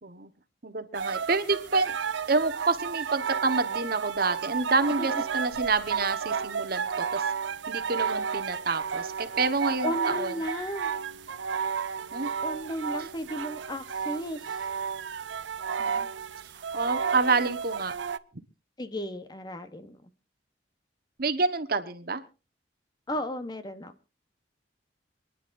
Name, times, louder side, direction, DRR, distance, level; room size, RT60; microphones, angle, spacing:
voice 1, 0.6-2.0 2.3-7.2 7.7-10.3 12.1-12.3 15.8-16.1 16.5-17.9 21.2-22.2, right 3 dB, 55° right, 11 dB, 1.2 m, -28 dB
sound 1, 0.9-18.2, right 6 dB, 85° right, 0.6 m, -32 dB
voice 2, 9.8-10.9 12.4-14.6 18.8-20.1 23.1-23.9, left 1 dB, 25° left, 11 dB, 1.0 m, -34 dB
27.5 x 10.5 x 2.6 m, 0.31 s
head